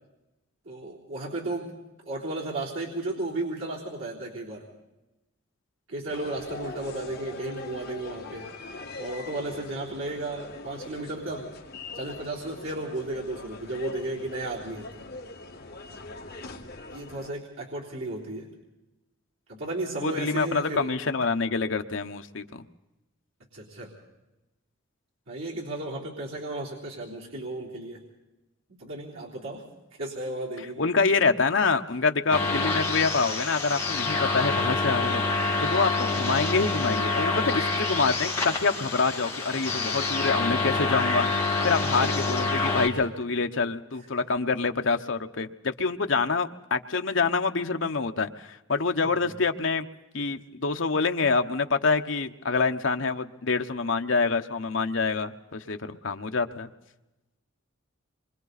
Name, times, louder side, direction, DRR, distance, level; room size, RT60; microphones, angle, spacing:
voice 1, 0.7-1.8 2.0-4.7 5.9-8.5 9.0-11.5 11.9-15.0 16.3-16.5 16.9-18.5 19.5-20.9 23.5-23.9 25.3-28.0 28.7-29.7 30.0-30.9 42.0-42.1 49.0-49.3 50.2-50.3, right 2 dB, 85° right, -5 dB, 3.7 m, -34 dB
sound 1, 6.1-17.3, left 2 dB, 50° left, 2.0 m, -42 dB
voice 2, 20.0-22.6 30.8-41.3 41.6-49.9 50.1-56.7, left 4 dB, 70° left, 6 dB, 1.0 m, -26 dB
sound 2, 32.3-42.9, left 3 dB, 15° left, 2.5 m, -27 dB
26.5 x 24.0 x 4.1 m, 0.97 s
head